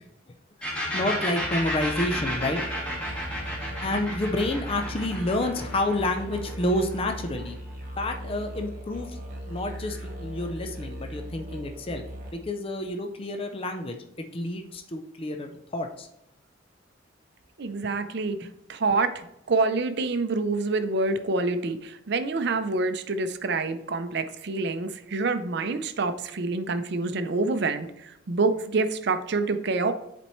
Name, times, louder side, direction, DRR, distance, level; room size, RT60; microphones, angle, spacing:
sound 1, 0.6-8.1, equal, 5° left, 1.7 m, -33 dB
voice 1, 0.9-2.9 3.8-7.6 8.0-9.2 9.5-12.0 12.3-16.1, left 1 dB, 30° left, 4 dB, 0.5 m, -29 dB
sound 2, 1.4-12.3, equal, 40° right, 1.6 m, -39 dB
voice 2, 17.6-29.9, right 3 dB, 60° right, 10 dB, 0.5 m, -27 dB
10.0 x 4.3 x 3.1 m, 0.83 s
head